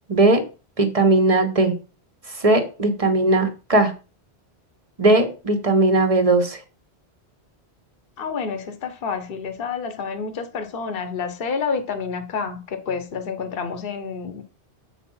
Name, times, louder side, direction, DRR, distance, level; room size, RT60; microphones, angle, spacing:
voice 1, 0.1-0.4 0.8-1.7 2.4-3.9 5.0-6.6, right 2 dB, 35° right, 1.3 m, -18 dB
voice 2, 8.2-14.4, left 5 dB, 60° left, 1.1 m, -29 dB
8.0 x 4.3 x 5.6 m
omnidirectional pair, 1.1 m